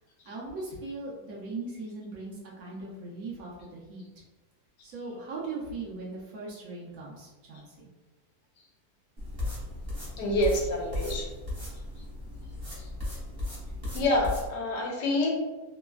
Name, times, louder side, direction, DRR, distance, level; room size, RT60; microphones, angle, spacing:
voice 1, 0.3-4.0 4.8-7.9, right 3 dB, 65° right, -4 dB, 1.0 m, -39 dB
sound 1, 9.2-14.5, left 2 dB, 25° right, 0.9 m, -36 dB
voice 2, 10.2-11.3 13.9-15.3, left 1 dB, 85° left, -1 dB, 1.3 m, -27 dB
3.2 x 2.1 x 2.3 m, 1.2 s
omnidirectional pair, 1.8 m